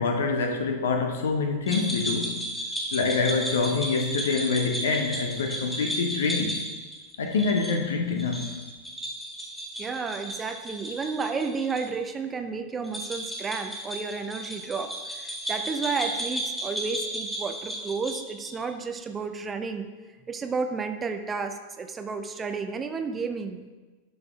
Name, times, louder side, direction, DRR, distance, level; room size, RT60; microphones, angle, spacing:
voice 1, 0.0-2.4 2.9-6.5 7.2-8.5, left 4 dB, 65° left, 4 dB, 0.9 m, -26 dB
sound 1, 1.7-11.8 12.1-12.2 12.8-18.6, right 1 dB, 5° left, 2.1 m, -34 dB
voice 2, 9.8-19.9 20.3-23.7, right 5 dB, 20° right, 7 dB, 0.5 m, -32 dB
12.0 x 6.4 x 2.3 m, 1.3 s
figure-of-eight pair, 90°, 0 cm